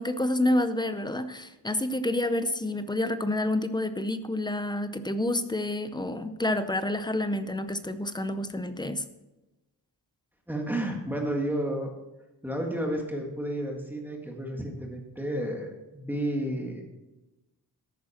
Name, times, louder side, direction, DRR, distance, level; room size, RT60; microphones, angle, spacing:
voice 1, 0.0-9.0, left 1 dB, 10° left, 10 dB, 0.6 m, -28 dB
voice 2, 10.5-11.9 12.4-16.8, right 1 dB, 5° right, 1 dB, 1.7 m, -31 dB
13.5 x 10.5 x 4.3 m, 1.0 s
wide cardioid pair, 170°, 41 cm